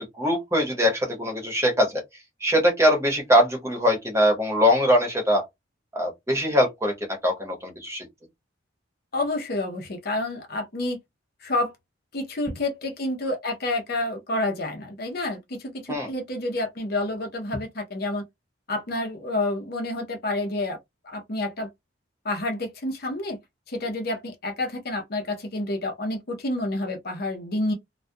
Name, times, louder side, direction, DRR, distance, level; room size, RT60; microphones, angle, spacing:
voice 1, 0.0-2.0 2.4-5.4 5.9-6.9 7.2-8.1 15.9-16.1, equal, 15° right, 0.9 m, -22 dB
voice 2, 9.1-11.0 11.4-11.7 12.1-18.2 18.7-20.8 21.0-21.7 22.2-23.4 23.7-27.7, left 2 dB, 50° left, 0.7 m, -29 dB
2.2 x 2.2 x 2.6 m
head